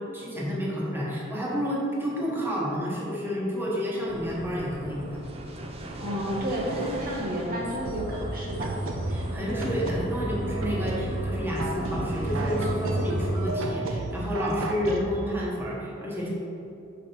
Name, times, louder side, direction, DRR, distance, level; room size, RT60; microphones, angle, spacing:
voice 1, 0.0-5.2 9.1-16.3, equal, 10° right, -5 dB, 1.2 m, -30 dB
sound 1, 4.1-13.5, right 1 dB, 30° right, 0.6 m, -34 dB
voice 2, 5.9-8.7, equal, 45° right, -4 dB, 1.0 m, -31 dB
sound 2, 7.8-15.0, right 2 dB, 75° right, 0.7 m, -33 dB
6.4 x 5.2 x 4.4 m, 2.9 s
head